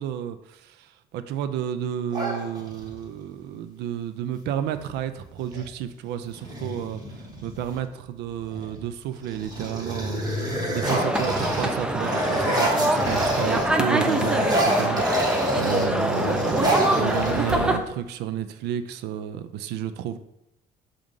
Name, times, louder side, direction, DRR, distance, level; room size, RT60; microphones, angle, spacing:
voice 1, 0.0-20.2, right 10 dB, 80° right, 0.5 m, -31 dB
sound 1, 2.1-3.1 4.7-4.9 5.2-5.7 6.3-7.8 8.4-8.8 9.2-13.7 14.0-17.9, equal, 25° right, 1.6 m, -28 dB
sound 2, 10.8-17.8, right 1 dB, 5° right, 0.5 m, -24 dB
7.4 x 2.5 x 5.2 m
cardioid pair, 110°, 17 cm